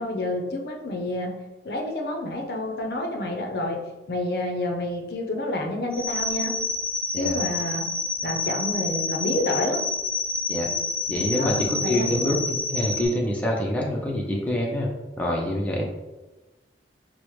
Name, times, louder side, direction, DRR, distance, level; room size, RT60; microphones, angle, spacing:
voice 1, 0.0-1.4 1.6-3.8 4.1-6.6 7.2-7.9 8.2-9.8 11.4-11.5 11.8-12.3, left 1 dB, 60° left, 2 dB, 0.5 m, -28 dB
sound 1, 5.9-13.1, left 3 dB, 15° right, 1.2 m, -28 dB
voice 2, 11.1-14.9 15.2-15.8, left 1 dB, 10° left, -3 dB, 0.4 m, -26 dB
4.5 x 2.0 x 3.1 m, 1.1 s
head